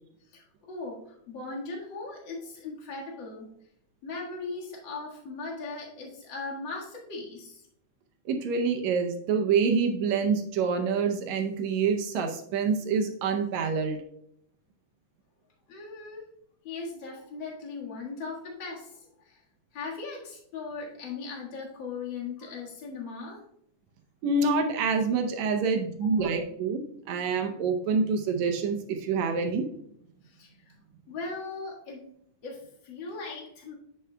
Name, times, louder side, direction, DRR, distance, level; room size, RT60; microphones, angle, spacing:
voice 1, 0.3-3.5 4.0-7.6 15.7-16.3 16.6-19.4 19.7-23.4 26.0-26.3 30.2-30.7 31.1-32.1 32.4-33.7, left 4 dB, 45° left, -2 dB, 2.0 m, -39 dB
voice 2, 8.3-14.0 24.2-29.7, right 5 dB, 75° right, 5 dB, 1.9 m, -26 dB
9.8 x 7.8 x 2.2 m, 0.71 s
omnidirectional pair, 3.5 m